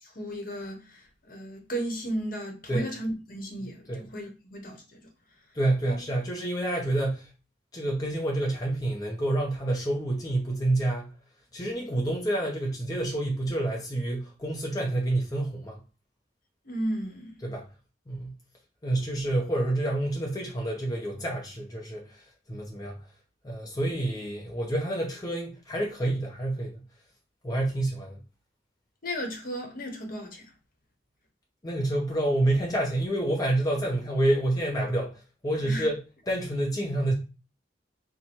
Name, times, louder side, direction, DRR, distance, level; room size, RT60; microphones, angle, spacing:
voice 1, 0.0-5.1 5.8-6.0 16.6-17.4 29.0-30.5 35.6-35.9, equal, 50° left, 1.0 m, -35 dB
voice 2, 3.6-4.1 5.5-7.3 7.7-11.1 11.5-15.8 17.4-17.7 18.1-18.4 18.8-23.0 23.4-26.8 27.4-28.2 31.6-37.1, right 1 dB, 20° left, 0.6 m, -28 dB
4.2 x 2.1 x 4.4 m
head